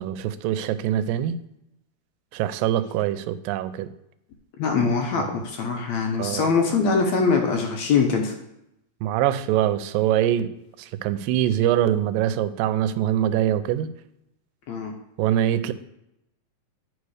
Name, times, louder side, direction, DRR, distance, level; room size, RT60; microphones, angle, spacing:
voice 1, 0.0-1.4 2.3-3.9 5.2-5.3 6.2-6.5 9.0-10.5 10.8-13.9 15.2-15.7, right 11 dB, 85° right, 12 dB, 2.2 m, -23 dB
voice 2, 4.6-8.3 14.7-14.9, left 5 dB, 70° left, 2 dB, 1.8 m, -23 dB
9.3 x 4.8 x 4.8 m, 0.82 s
omnidirectional pair, 4.0 m